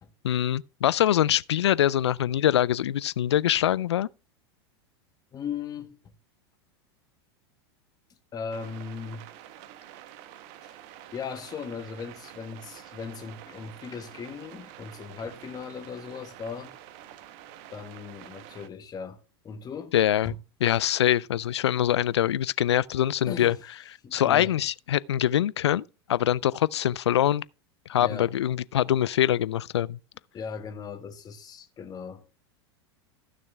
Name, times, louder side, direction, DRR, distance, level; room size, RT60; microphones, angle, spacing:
voice 1, 0.2-4.1 19.9-20.3 20.6-23.6 24.1-25.8 26.1-27.4 27.9-30.0, left 11 dB, 85° left, 0.4 m, -24 dB
voice 2, 5.3-6.0 8.3-9.2 11.1-16.7 17.7-19.9 20.2-20.4 23.2-23.6 24.0-24.6 28.0-28.3 30.3-32.2, left 6 dB, 30° left, 1.7 m, -38 dB
sound 1, 8.5-18.7, right 12 dB, 55° right, 1.2 m, -48 dB
14.5 x 6.5 x 3.4 m
hypercardioid pair, 100°, 14 cm